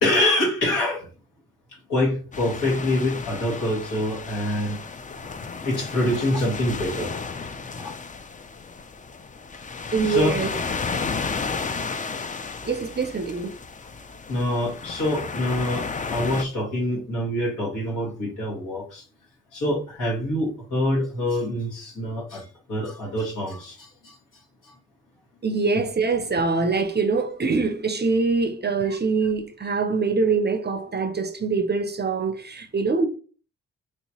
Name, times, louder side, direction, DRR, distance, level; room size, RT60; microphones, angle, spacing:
voice 1, 0.0-1.1 1.7-4.8 5.6-7.1 7.8-7.9 9.6-10.4 11.3-11.4 14.3-19.0 19.5-24.2 24.6-24.7 28.9-29.0, left 1 dB, 75° left, 1.5 m, -26 dB
sound 1, 2.3-16.4, left 4 dB, 25° left, 0.4 m, -33 dB
voice 2, 9.9-10.5 12.7-13.5 25.4-33.1, right 4 dB, 35° right, 0.5 m, -24 dB
3.3 x 2.8 x 2.8 m
cardioid pair, 50°, 31 cm